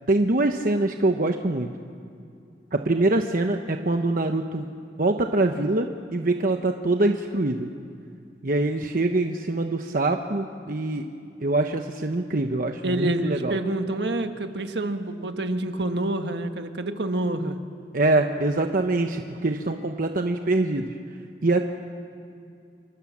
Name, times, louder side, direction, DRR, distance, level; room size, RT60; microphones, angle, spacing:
voice 1, 0.1-1.7 2.7-4.7 5.0-7.7 8.4-11.0 11.4-13.6 17.9-20.9 21.4-21.6, right 2 dB, 50° right, 5 dB, 1.0 m, -24 dB
voice 2, 12.8-17.6 19.6-19.8, right 1 dB, 70° right, 7 dB, 1.5 m, -28 dB
26.5 x 26.0 x 7.3 m, 2.5 s
head